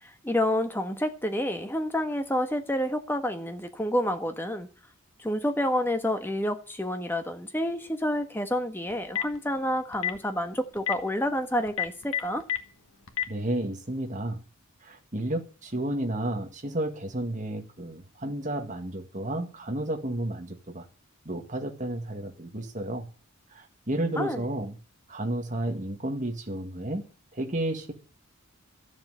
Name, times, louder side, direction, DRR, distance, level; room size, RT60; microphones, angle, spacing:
voice 1, 0.0-4.7 5.2-12.4 24.2-24.4, left 1 dB, 10° left, 1.3 m, -29 dB
Telephone, 8.9-9.4 9.9-10.2 10.8-10.9 11.7-12.6 13.1-13.2, left 10 dB, 70° left, 1.6 m, -27 dB
voice 2, 13.3-14.4 14.8-20.9 21.3-23.1 23.5-24.7 25.1-27.0 27.3-27.9, right 1 dB, 35° right, 1.9 m, -32 dB
13.5 x 7.4 x 9.2 m
head